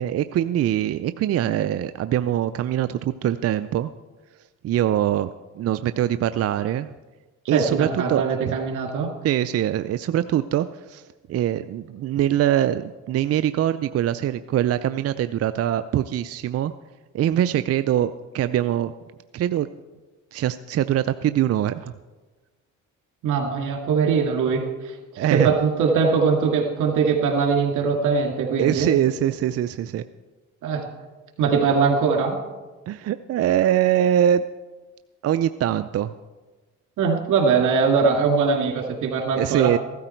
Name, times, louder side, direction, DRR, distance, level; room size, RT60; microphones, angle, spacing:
voice 1, 0.0-3.9 4.6-5.3 5.6-6.9 7.5-8.2 9.2-11.0 11.3-16.7 17.1-18.9 19.3-19.7 20.3-21.9 25.2-25.5 28.6-30.0 32.9-34.4 35.2-36.1 39.4-39.8, right 11 dB, 55° right, 12 dB, 0.5 m, -23 dB
voice 2, 7.5-9.1 23.2-28.9 30.6-30.9 31.4-32.4 37.0-39.7, right 5 dB, 85° right, 3 dB, 2.2 m, -21 dB
15.0 x 13.0 x 4.5 m, 1.3 s
cardioid pair, 90°, 30 cm